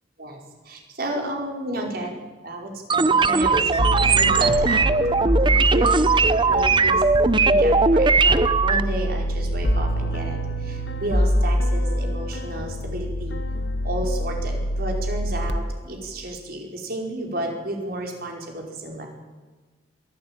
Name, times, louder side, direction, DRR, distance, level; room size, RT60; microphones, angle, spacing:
voice 1, 0.6-7.0 7.3-13.4 13.8-19.1, right 1 dB, 60° right, 1 dB, 5.1 m, -32 dB
sound 1, 2.9-8.8, right 4 dB, 30° right, 0.7 m, -19 dB
sound 2, 3.8-15.5, equal, 70° left, 1.4 m, -25 dB
22.0 x 15.5 x 9.0 m, 1.3 s
head